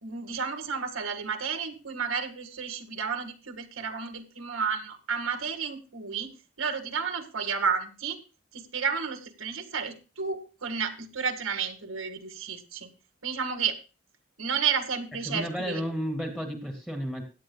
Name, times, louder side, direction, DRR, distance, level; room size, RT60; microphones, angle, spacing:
voice 1, 0.0-6.3 6.6-8.2 8.5-12.9 13.2-13.8 14.4-15.8, right 6 dB, 90° right, 6 dB, 1.8 m, -31 dB
voice 2, 15.3-17.2, equal, 5° left, 3 dB, 2.1 m, -32 dB
17.0 x 11.0 x 2.3 m, 0.31 s
head